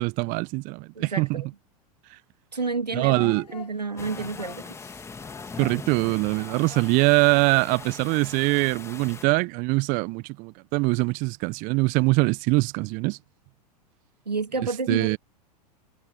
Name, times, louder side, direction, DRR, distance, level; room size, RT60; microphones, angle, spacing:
voice 1, 0.0-1.4 2.1-2.2 2.9-3.5 5.6-13.2 14.9-15.2, right 27 dB, 40° right, 1.2 m, -23 dB
voice 2, 1.0-1.5 2.5-4.8 14.3-15.2, right 4 dB, 85° right, 2.2 m, -30 dB
Singing, 3.1-8.1, left 5 dB, 80° left, 3.3 m, -45 dB
heavy storm on the street, 4.0-9.2, left 4 dB, 15° left, 2.0 m, -41 dB
figure-of-eight pair, 90°, 20 cm